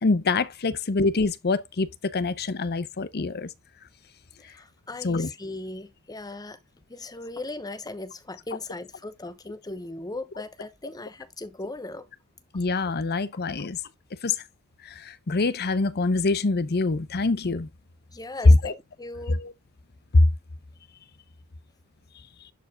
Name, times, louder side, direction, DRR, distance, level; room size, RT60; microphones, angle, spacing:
voice 1, 0.0-3.5 5.0-5.3 12.5-13.8 14.2-14.4 15.0-17.7 18.4-18.7 19.4-19.5 20.1-20.2, left 3 dB, 50° left, 0.7 m, -23 dB
voice 2, 4.4-6.6 6.9-12.1 18.1-19.4, left 2 dB, 20° left, 0.9 m, -38 dB
11.0 x 4.9 x 2.3 m
head